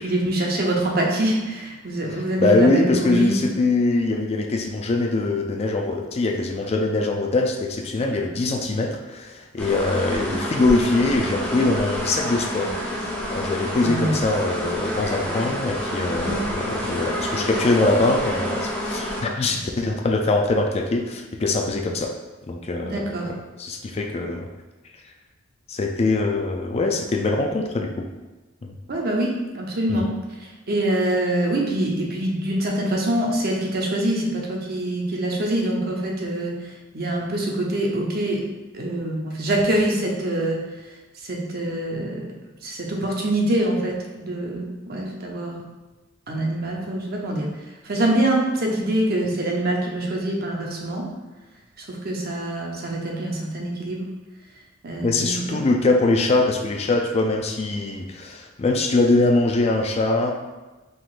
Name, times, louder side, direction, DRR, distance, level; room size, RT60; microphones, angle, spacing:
voice 1, 0.0-3.4 13.8-14.2 22.8-23.3 28.9-30.1 30.4-38.4 38.7-40.6 41.1-42.3 42.6-45.6 46.3-47.5 47.8-51.0 51.8-54.1 54.8-55.6, right 1 dB, 50° right, -1 dB, 0.8 m, -25 dB
voice 2, 2.1-12.8 13.0-22.1 22.5-24.5 25.7-28.1 28.6-28.7 29.9-30.1 55.0-60.3, left 2 dB, 30° left, 3 dB, 0.3 m, -23 dB
sound 1, 9.6-19.2, equal, 5° left, 0.7 m, -28 dB
4.8 x 3.8 x 2.5 m, 1.2 s
head